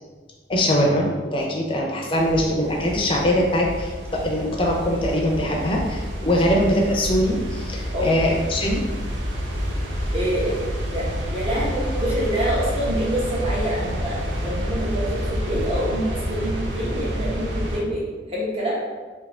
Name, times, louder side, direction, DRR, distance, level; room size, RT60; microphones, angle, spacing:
voice 1, 0.5-8.8, equal, 30° left, -1 dB, 0.6 m, -22 dB
sound 1, 2.2-17.8, equal, 90° right, 0.7 m, -28 dB
voice 2, 6.2-6.6 7.9-8.2 10.1-11.1 11.3-18.7, right 1 dB, 30° right, -6 dB, 1.0 m, -26 dB
3.7 x 2.8 x 3.4 m, 1.4 s
head